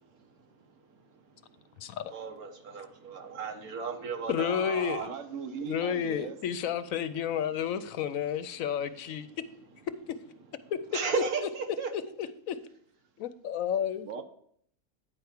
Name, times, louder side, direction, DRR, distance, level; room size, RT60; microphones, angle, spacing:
voice 1, 0.0-5.1 10.6-11.9, right 5 dB, 80° right, 1.7 m, -36 dB
voice 2, 1.8-2.1 4.3-5.1 5.6-9.3 10.1-10.2 10.7-10.8 11.1-11.2 11.9-12.6 13.2-14.1, left 8 dB, 70° left, 1.0 m, -31 dB
voice 3, 5.0-6.4 14.0-14.2, right 6 dB, 65° right, 1.2 m, -38 dB
9.5 x 4.6 x 6.5 m
omnidirectional pair, 1.5 m